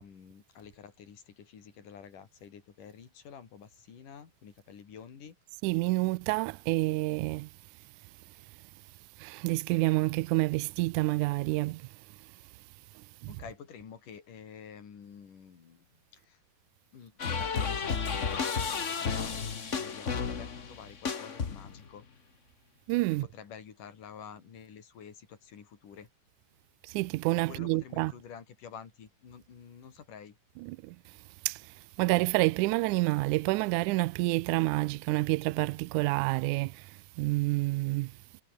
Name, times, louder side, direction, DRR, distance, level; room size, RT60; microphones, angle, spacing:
voice 1, 0.0-5.4 13.3-15.9 16.1-16.4 16.9-22.0 23.2-26.1 27.5-30.4, left 7 dB, 75° left, 4.9 m, -49 dB
voice 2, 5.6-7.5 9.2-11.8 13.2-13.4 22.9-23.3 26.8-28.1 30.6-31.0 31.5-31.6 32.0-36.9 37.2-38.1, right 21 dB, 80° right, 1.9 m, -28 dB
sound 1, 17.2-21.9, left 5 dB, 45° left, 1.0 m, -32 dB
omnidirectional pair, 3.8 m